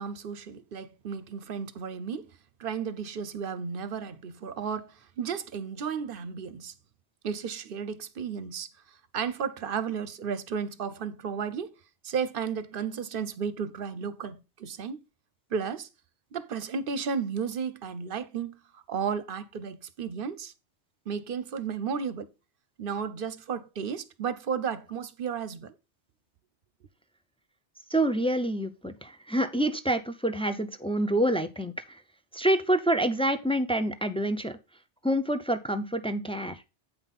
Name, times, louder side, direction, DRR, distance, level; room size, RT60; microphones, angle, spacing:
voice 1, 0.0-2.3 2.6-6.7 7.2-8.7 9.1-11.7 12.0-15.0 15.5-15.9 16.3-20.5 21.1-22.3 22.8-25.8, right 6 dB, 55° right, 0.8 m, -33 dB
voice 2, 27.9-32.0 32.3-34.6 35.0-36.6, right 1 dB, 10° left, 0.3 m, -27 dB
8.5 x 5.5 x 4.1 m
omnidirectional pair, 1.1 m